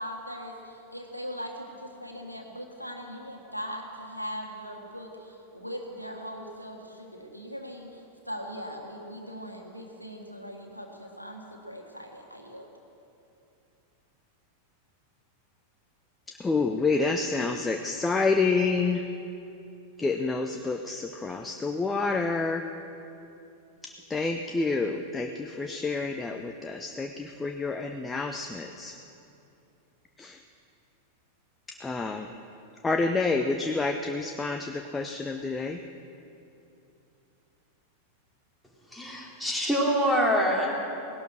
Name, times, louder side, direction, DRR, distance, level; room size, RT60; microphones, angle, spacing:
voice 1, 0.0-12.7, equal, 90° left, 2 dB, 1.6 m, -40 dB
voice 2, 16.3-19.0 20.0-22.7 23.8-28.9 30.2-30.4 31.7-32.3 32.8-35.8, left 3 dB, 15° left, 5 dB, 0.7 m, -28 dB
voice 3, 38.9-40.8, equal, 5° right, -2 dB, 2.9 m, -25 dB
17.5 x 12.0 x 6.4 m, 2.7 s
figure-of-eight pair, 90°, 0 cm